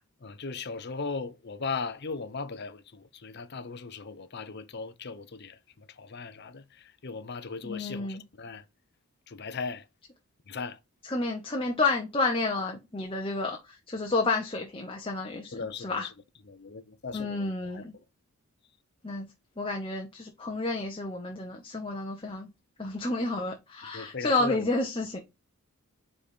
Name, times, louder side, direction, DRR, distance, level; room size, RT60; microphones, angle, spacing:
voice 1, 0.2-8.6 9.3-9.9 10.5-10.8 15.5-16.1 16.5-18.0 23.9-24.7, left 4 dB, 50° left, 0.7 m, -38 dB
voice 2, 7.6-8.2 11.0-16.1 17.1-17.9 19.0-19.3 19.6-22.5 22.8-25.2, left 3 dB, 25° left, 0.9 m, -30 dB
5.3 x 4.2 x 5.0 m
head